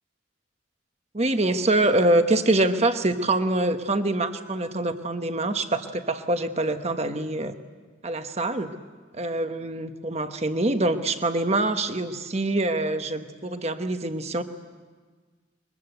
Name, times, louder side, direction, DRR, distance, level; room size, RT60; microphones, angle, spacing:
voice 1, 1.1-7.5 8.0-8.7 9.1-14.4, right 2 dB, 35° right, 8 dB, 1.2 m, -25 dB
22.5 x 22.5 x 8.1 m, 1.5 s
head